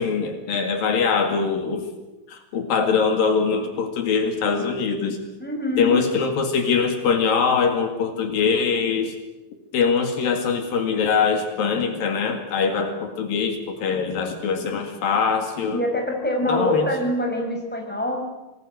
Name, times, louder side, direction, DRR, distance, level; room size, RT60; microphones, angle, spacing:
voice 1, 0.0-1.9 2.3-5.2 5.8-9.2 9.7-15.8 16.5-16.9, left 5 dB, 70° left, 5 dB, 3.8 m, -23 dB
voice 2, 5.4-6.0 15.6-18.2, left 1 dB, ahead, 2 dB, 5.1 m, -24 dB
26.0 x 19.5 x 7.9 m, 1.1 s
omnidirectional pair, 4.2 m